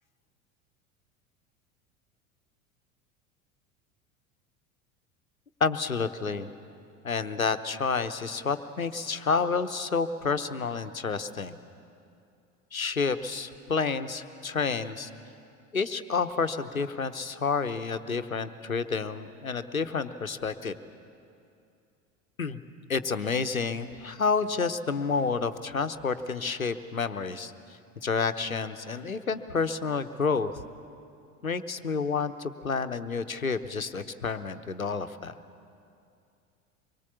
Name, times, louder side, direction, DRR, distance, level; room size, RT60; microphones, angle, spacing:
voice 1, 5.6-6.5 7.0-11.6 12.7-15.1 15.7-20.7 22.4-22.6 22.9-30.6 31.4-35.3, left 5 dB, 85° left, 11 dB, 0.9 m, -29 dB
25.0 x 22.5 x 7.1 m, 2.5 s
figure-of-eight pair, 75°, 40 cm